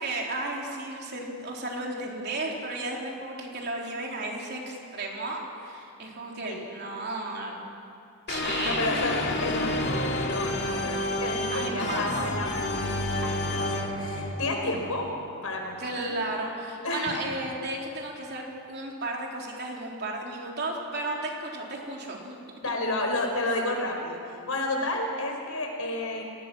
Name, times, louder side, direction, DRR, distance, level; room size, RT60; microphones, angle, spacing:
voice 1, 0.0-7.6 8.3-8.9 11.5-12.1 14.1-14.4 15.8-22.4, right 2 dB, 50° right, -1 dB, 3.7 m, -34 dB
sound 1, 8.3-15.2, left 1 dB, 50° left, 2.4 m, -30 dB
voice 2, 8.6-9.2 9.4-12.9 13.2-15.1 15.4-16.1 16.8-17.3 22.6-24.2 24.5-26.2, left 2 dB, 80° left, 2 dB, 4.7 m, -31 dB
30.0 x 19.5 x 6.2 m, 2.5 s
head